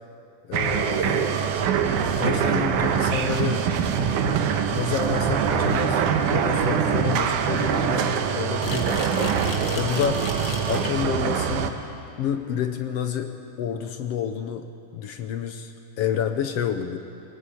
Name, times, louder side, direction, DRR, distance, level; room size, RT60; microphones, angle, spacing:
voice 1, 0.5-1.4 2.2-3.6 4.7-9.4 9.7-10.3 10.7-11.8 12.2-14.7 14.9-17.0, left 8 dB, 70° left, 7 dB, 1.6 m, -29 dB
sound 1, 0.5-11.7, right 7 dB, 80° right, 2.5 m, -23 dB
sound 2, 8.6-11.0, left 4 dB, 45° left, 1.3 m, -36 dB
22.5 x 17.0 x 8.6 m, 2.6 s
omnidirectional pair, 3.6 m